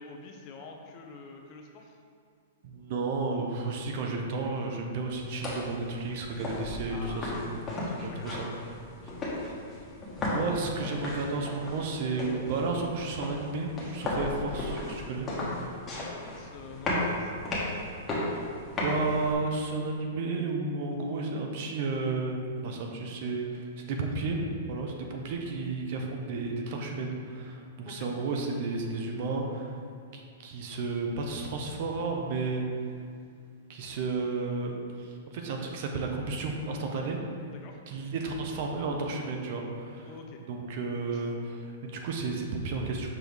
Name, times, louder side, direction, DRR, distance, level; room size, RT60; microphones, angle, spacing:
voice 1, 0.0-2.0 6.9-7.6 7.8-8.5 9.0-9.4 14.5-14.6 16.0-17.7 19.0-19.1 27.8-28.1 37.5-37.8 40.0-40.4 41.1-41.3, left 4 dB, 35° left, 2 dB, 0.6 m, -47 dB
voice 2, 2.6-7.6 7.9-8.5 10.1-15.3 15.9-16.0 18.8-24.4 24.7-29.7 30.1-32.6 33.7-37.2 37.9-40.1 40.5-43.1, right 3 dB, 50° right, 2 dB, 0.8 m, -32 dB
sound 1, 5.1-19.3, left 1 dB, 15° left, 1.2 m, -35 dB
6.0 x 4.7 x 3.5 m, 2.2 s
hypercardioid pair, 150°, 0 cm